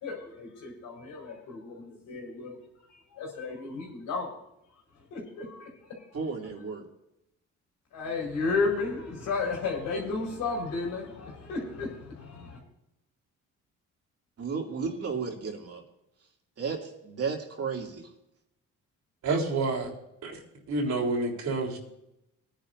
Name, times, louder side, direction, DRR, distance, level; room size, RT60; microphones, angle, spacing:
voice 1, 0.0-2.6 2.9-4.3 5.1-6.0 7.9-12.6, left 4 dB, 90° left, -1 dB, 4.7 m, -33 dB
voice 2, 6.1-6.8 14.4-15.8 16.6-18.1, right 5 dB, 50° right, 1 dB, 2.7 m, -33 dB
voice 3, 19.2-19.9 20.2-20.3 20.7-21.8, right 3 dB, 65° right, -1 dB, 3.6 m, -28 dB
21.0 x 10.0 x 2.6 m, 0.85 s
cardioid pair, 90°, 30 cm